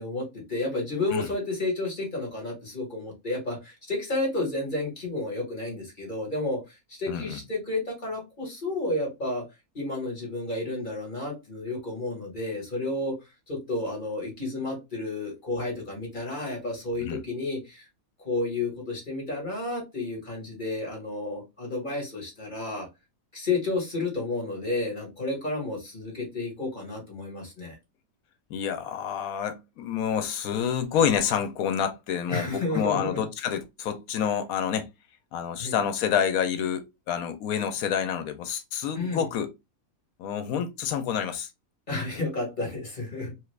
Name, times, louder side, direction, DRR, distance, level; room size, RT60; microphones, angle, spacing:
voice 1, 0.0-9.4 9.7-13.2 13.5-17.9 18.2-22.9 23.3-27.7 32.3-33.2 35.6-35.8 39.0-39.3 41.9-43.3, left 2 dB, 35° left, 1.4 m, -31 dB
voice 2, 7.1-7.4 17.0-17.2 28.5-34.9 35.3-39.5 40.2-41.5, left 8 dB, 90° left, 1.1 m, -28 dB
3.2 x 2.4 x 3.2 m
omnidirectional pair, 1.5 m